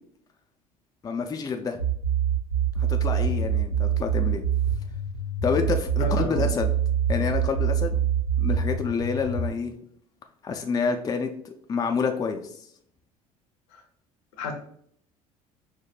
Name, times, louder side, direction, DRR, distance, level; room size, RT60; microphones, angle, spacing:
voice 1, 1.0-1.8 2.8-4.4 5.4-6.7 7.1-8.0 8.4-9.7 10.4-12.5, left 5 dB, 20° left, 5 dB, 0.4 m, -28 dB
sound 1, 1.8-9.5, right 7 dB, 90° right, 0.7 m, -25 dB
voice 2, 6.0-6.5 13.7-13.8 14.4-14.5, left 4 dB, 70° left, 3 dB, 0.8 m, -31 dB
4.7 x 2.1 x 2.4 m, 0.65 s
figure-of-eight pair, 60°, 19 cm